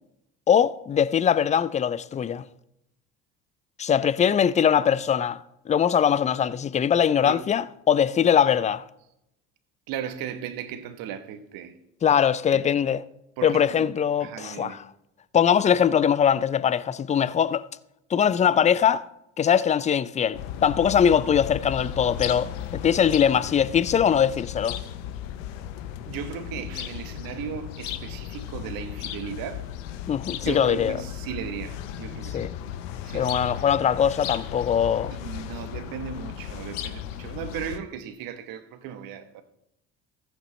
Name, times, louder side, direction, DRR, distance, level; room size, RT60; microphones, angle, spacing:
voice 1, 0.5-2.4 3.8-8.8 12.0-13.0 13.4-14.8 15.3-17.6 18.1-19.1 19.4-24.8 30.1-31.0 32.3-32.5 33.1-35.1, left 8 dB, 20° left, 0.3 m, -22 dB
voice 2, 9.9-11.8 12.5-12.6 13.4-13.9 14.2-14.8 26.1-29.7 30.4-32.5 33.0-33.6 35.1-39.4, right 8 dB, 65° right, 1.1 m, -36 dB
sound 1, 20.3-37.8, left 10 dB, 80° left, 0.7 m, -35 dB
14.5 x 8.3 x 3.2 m
hypercardioid pair, 70°, 37 cm